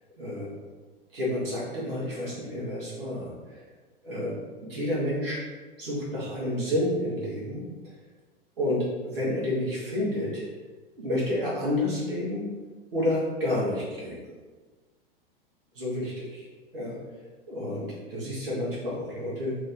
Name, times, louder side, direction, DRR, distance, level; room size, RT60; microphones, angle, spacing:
voice 1, 0.2-0.5 1.1-3.6 4.0-5.4 5.8-7.6 8.6-10.4 10.9-12.5 12.9-14.3 15.7-16.5 16.7-16.9 17.5-19.6, left 1 dB, 65° right, -7 dB, 1.4 m, -30 dB
3.0 x 2.8 x 3.7 m, 1.3 s
figure-of-eight pair, 95°, 30 cm